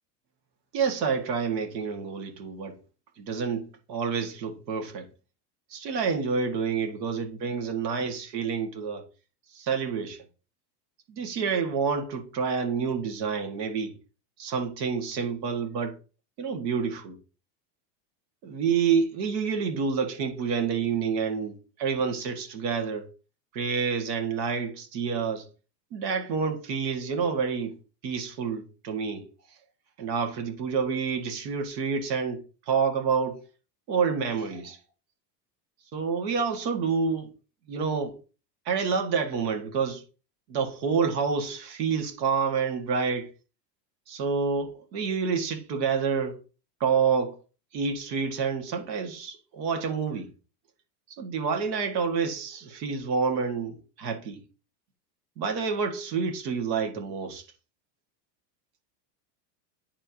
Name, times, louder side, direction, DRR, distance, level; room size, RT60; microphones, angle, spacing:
voice 1, 0.7-2.8 3.2-5.1 5.7-9.0 9.5-10.3 11.1-14.0 14.4-16.0 16.4-17.2 18.4-23.1 23.5-25.5 25.9-27.8 28.0-29.2 30.0-33.4 33.9-34.8 35.9-37.3 37.7-38.2 38.7-40.0 40.5-43.3 44.1-46.4 46.8-47.4 47.7-50.3 51.1-54.4 55.4-57.5, right 5 dB, 85° right, 2.0 m, -28 dB
9.8 x 4.5 x 2.9 m
supercardioid pair, 145°, 49 cm